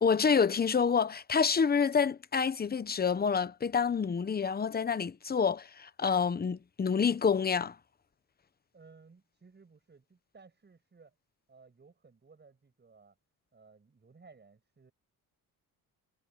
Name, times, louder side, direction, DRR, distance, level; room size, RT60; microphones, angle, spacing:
voice 1, 0.0-7.8, left 6 dB, 25° left, 0.9 m, -28 dB
voice 2, 8.7-11.1 11.5-13.2 13.5-14.9, right 4 dB, 30° right, 7.1 m, -58 dB
cardioid pair, 125°, 36 cm